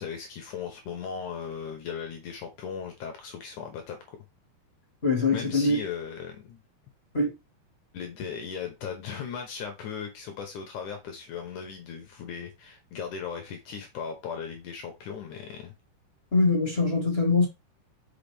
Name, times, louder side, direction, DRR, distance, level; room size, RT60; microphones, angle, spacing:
voice 1, 0.0-4.2 5.3-6.6 7.9-15.7, left 7 dB, 75° left, 1.9 m, -37 dB
voice 2, 5.0-5.8 7.1-7.3 16.3-17.5, left 3 dB, 25° left, 1.2 m, -23 dB
6.2 x 5.7 x 3.5 m
omnidirectional pair, 5.0 m